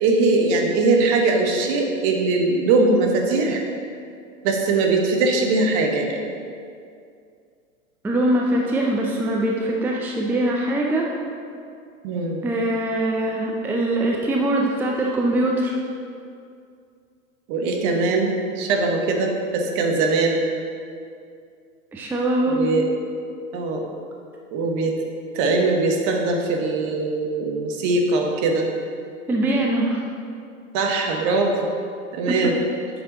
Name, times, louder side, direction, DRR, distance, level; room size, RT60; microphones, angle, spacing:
voice 1, 0.0-3.6 4.4-6.2 12.0-12.4 17.5-20.4 22.4-22.9 23.5-23.9 24.5-24.9 25.3-28.7 30.7-31.7 32.1-32.6, right 3 dB, 45° right, 2 dB, 1.2 m, -21 dB
voice 2, 8.0-11.1 12.4-15.7 21.9-22.6 29.3-30.0 32.3-32.5, right 1 dB, 5° right, -1 dB, 0.5 m, -22 dB
8.0 x 6.0 x 3.9 m, 2.4 s
hypercardioid pair, 95°, 41 cm